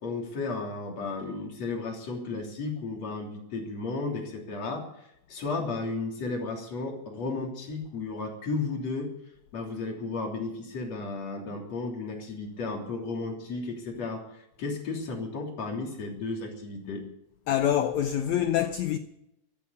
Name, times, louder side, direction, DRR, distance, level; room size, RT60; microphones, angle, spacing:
voice 1, 0.0-9.1 9.5-17.0, left 3 dB, 45° left, 4.2 m, -34 dB
voice 2, 17.5-19.0, left 10 dB, 80° left, 1.6 m, -25 dB
15.0 x 14.0 x 7.0 m
omnidirectional pair, 4.2 m